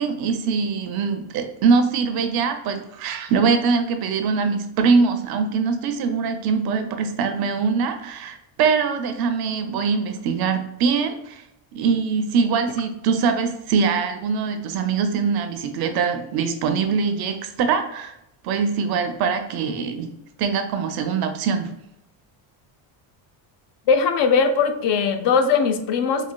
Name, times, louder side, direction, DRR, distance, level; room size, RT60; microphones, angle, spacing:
voice 1, 0.0-11.4 11.7-18.1 18.4-20.1 20.4-21.7, right 5 dB, 55° right, 6 dB, 0.5 m, -23 dB
voice 2, 23.9-26.3, left 5 dB, 65° left, 7 dB, 0.5 m, -20 dB
4.0 x 2.7 x 2.2 m, 0.83 s
cardioid pair, 175°, 46 cm